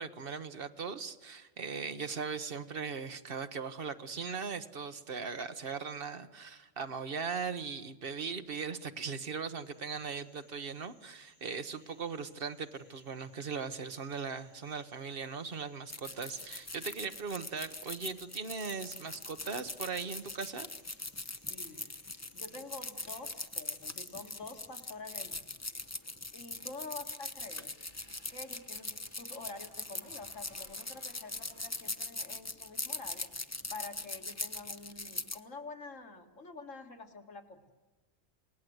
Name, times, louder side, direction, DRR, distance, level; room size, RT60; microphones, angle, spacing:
voice 1, 0.0-20.7, right 5 dB, 50° right, 9 dB, 1.3 m, -39 dB
sound 1, 9.6-25.0, left 1 dB, 65° left, 7.8 m, -67 dB
sound 2, 15.9-35.4, left 2 dB, 15° left, 0.7 m, -41 dB
voice 2, 21.5-21.9 22.3-25.5 26.3-27.7 28.3-33.3 33.7-37.7, left 3 dB, 90° left, 3 dB, 2.5 m, -47 dB
sound 3, 25.7-32.0, left 1 dB, 40° left, 3.5 m, -63 dB
28.5 x 18.5 x 8.0 m, 1.2 s
omnidirectional pair, 1.3 m